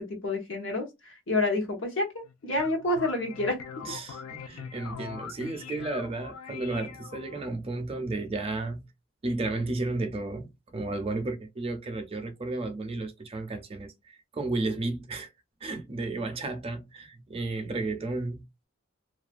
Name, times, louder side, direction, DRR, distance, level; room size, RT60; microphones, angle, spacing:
voice 1, 0.0-3.6, left 2 dB, 65° left, 0.8 m, -29 dB
sound 1, 2.2-7.5, left 7 dB, 85° left, 0.3 m, -42 dB
voice 2, 3.8-8.9 9.2-15.3 15.6-18.6, right 2 dB, 30° right, 0.4 m, -33 dB
2.3 x 2.2 x 2.4 m
head